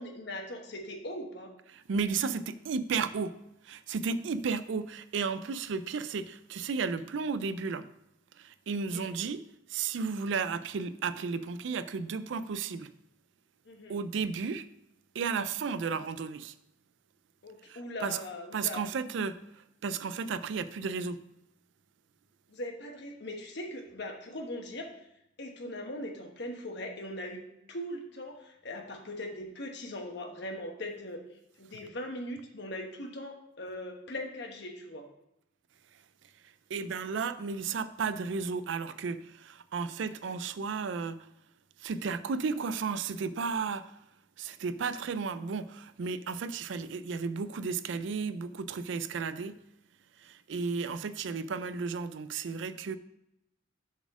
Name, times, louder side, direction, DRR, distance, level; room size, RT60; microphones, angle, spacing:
voice 1, 0.0-1.5 8.8-9.1 13.6-14.0 17.4-18.8 22.5-24.9 25.4-27.4 27.7-31.2 31.6-35.1, left 1 dB, 60° left, 1.2 m, -40 dB
voice 2, 1.7-3.4 3.6-7.9 8.4-9.4 9.7-12.9 13.9-14.6 15.1-16.5 17.7-18.2 18.5-19.4 19.8-21.2 36.7-41.2 41.8-43.9 44.4-49.6 50.2-53.0, right 5 dB, 65° right, 0.4 m, -33 dB
7.1 x 4.2 x 6.0 m
head